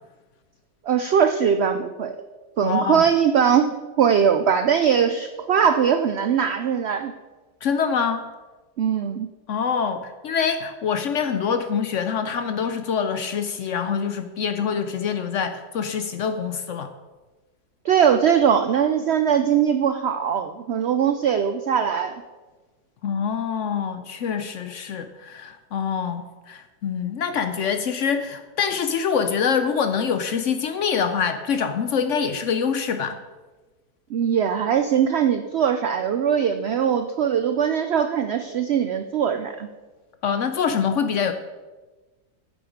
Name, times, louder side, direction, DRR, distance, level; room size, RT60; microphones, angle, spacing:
voice 1, 0.8-2.2 2.6-7.1 8.8-9.3 17.8-22.2 34.1-39.7, right 8 dB, 85° right, 8 dB, 0.5 m, -21 dB
voice 2, 2.6-3.0 7.6-8.3 9.5-16.9 23.0-33.2 40.2-41.3, left 6 dB, 65° left, 9 dB, 0.8 m, -25 dB
9.4 x 7.9 x 5.0 m, 1.2 s
omnidirectional pair, 1.7 m